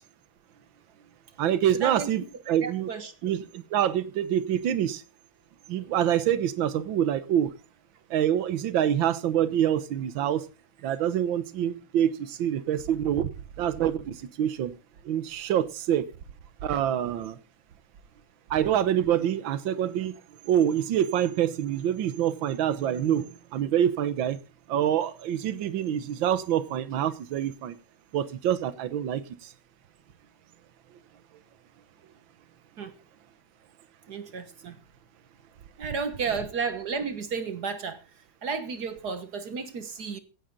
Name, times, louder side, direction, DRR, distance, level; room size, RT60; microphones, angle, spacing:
voice 1, 1.4-2.9 3.2-5.0 5.7-7.5 8.1-10.4 10.8-13.3 13.6-14.7 15.1-16.0 16.6-17.4 18.5-20.1 20.5-24.4 24.7-27.8 28.1-29.2, right 10 dB, 70° right, 1.7 m, -26 dB
voice 2, 2.6-3.1 32.8-33.0 34.1-34.8 35.8-38.0 38.4-40.2, right 5 dB, 55° right, 1.6 m, -32 dB
16.5 x 9.9 x 3.9 m
omnidirectional pair, 2.3 m